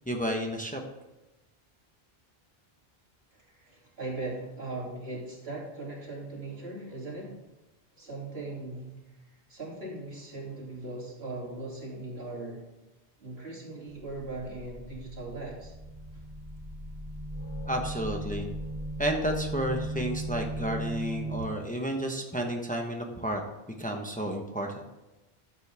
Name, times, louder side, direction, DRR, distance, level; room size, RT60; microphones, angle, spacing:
voice 1, 0.1-0.8 17.6-18.5 19.0-23.4 23.8-24.8, equal, 10° left, 2 dB, 1.1 m, -31 dB
voice 2, 3.3-7.4 8.0-9.0 9.5-12.6 13.2-15.7 16.1-16.2, right 2 dB, 80° right, -3 dB, 3.1 m, -39 dB
sound 1, 13.9-21.4, right 2 dB, 50° right, 3.0 m, -37 dB
13.0 x 7.6 x 3.5 m, 1.0 s
omnidirectional pair, 1.0 m